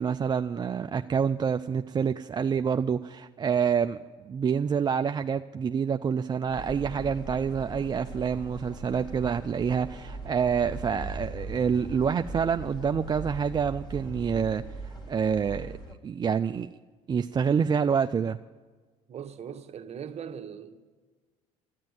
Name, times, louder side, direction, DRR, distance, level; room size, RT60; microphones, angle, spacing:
voice 1, 0.0-4.0 4.2-15.7 16.0-16.7 17.1-18.4, right 6 dB, 30° right, 0.4 m, -27 dB
sound 1, 6.5-16.0, right 2 dB, 30° left, 1.8 m, -40 dB
voice 2, 19.1-20.8, right 8 dB, 45° right, 1.0 m, -40 dB
13.0 x 7.5 x 9.6 m
supercardioid pair, 80°, 15 cm